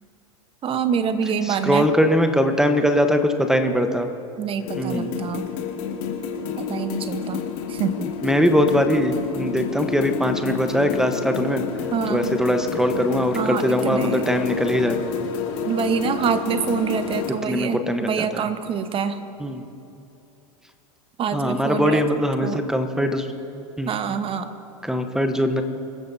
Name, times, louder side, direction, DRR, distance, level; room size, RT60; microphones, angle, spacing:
voice 1, 0.6-1.9 4.4-5.5 6.6-8.1 11.9-12.3 13.3-14.2 15.7-19.2 21.2-22.0 22.4-22.6 23.9-24.5, right 7 dB, 30° right, 9 dB, 1.2 m, -26 dB
voice 2, 1.4-4.1 4.8-5.1 8.2-11.6 12.1-15.1 17.4-18.4 19.4-19.6 21.3-23.3 23.8-23.9 24.8-25.6, equal, 5° right, 7 dB, 1.1 m, -21 dB
sound 1, 4.6-17.3, left 7 dB, 55° left, 2.5 m, -29 dB
26.0 x 14.5 x 2.8 m, 2.8 s
hypercardioid pair, 90°, 18 cm